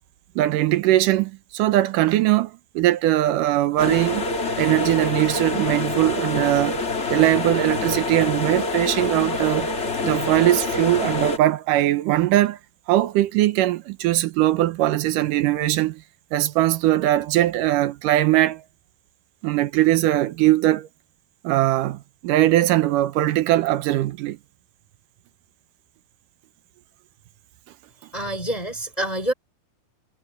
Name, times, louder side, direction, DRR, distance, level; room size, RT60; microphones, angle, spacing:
voice 1, 0.4-4.2 4.6-6.8 7.1-9.7 10.0-12.6 12.9-16.0 16.3-18.6 19.4-20.9 21.4-24.4, right 15 dB, 75° right, 2.2 m, -20 dB
sound 1, 3.8-11.4, left 3 dB, 35° left, 1.1 m, -26 dB
voice 2, 28.1-29.3, right 1 dB, 10° left, 3.8 m, -27 dB
omnidirectional pair, 4.3 m